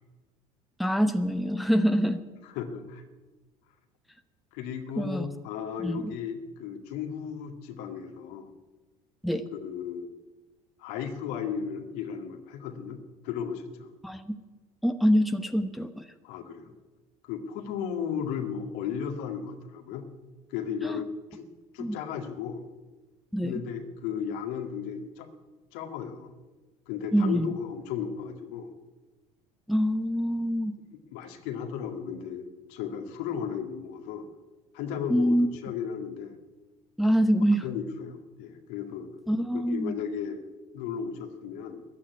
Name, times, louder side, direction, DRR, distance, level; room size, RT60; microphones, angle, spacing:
voice 1, 0.8-2.2 5.0-5.3 5.8-6.1 9.2-9.4 14.0-14.4 14.8-16.1 20.8-21.0 21.8-22.0 23.3-23.6 27.1-27.6 29.7-30.8 35.1-35.5 37.0-37.6 39.3-40.0, equal, ahead, 8 dB, 1.0 m, -25 dB
voice 2, 2.4-3.1 4.5-8.5 9.5-10.1 10.8-13.0 13.2-13.9 16.2-16.7 17.2-20.0 20.5-21.1 21.3-21.5 21.7-22.6 23.4-25.3 25.7-26.3 26.9-28.7 31.1-34.3 34.7-36.4 37.4-39.1 39.5-40.4 40.7-41.9, left 7 dB, 60° left, 6 dB, 2.1 m, -35 dB
14.5 x 9.8 x 9.6 m, 1.2 s
figure-of-eight pair, 65°, 19 cm